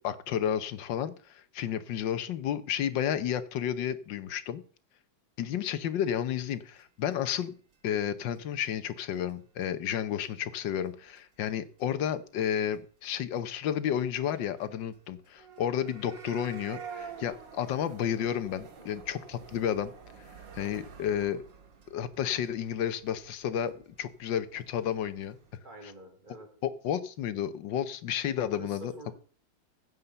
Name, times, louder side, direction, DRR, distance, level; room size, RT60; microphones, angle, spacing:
voice 1, 0.0-4.6 5.4-7.5 7.8-19.9 20.2-20.3 20.5-21.4 21.9-23.7 24.0-25.4 26.6-29.1, left 9 dB, 80° left, 13 dB, 1.6 m, -31 dB
sound 1, 6.5-6.6 6.8-6.9 7.1-7.2 7.4-7.5 7.7-7.8 8.0-8.1 8.3-8.7 9.0-9.1 9.3-9.4 9.6-9.9 10.2-10.3 10.6-11.2 11.5-11.8 12.1-12.2 12.4-12.5 12.7-12.8 13.0-13.1 13.3-13.4 13.7-25.6, right 6 dB, 85° right, 2.4 m, -49 dB
voice 2, 25.6-26.5 28.5-29.1, right 1 dB, 25° right, -1 dB, 4.7 m, -48 dB
15.5 x 5.7 x 6.8 m, 0.43 s
omnidirectional pair, 2.0 m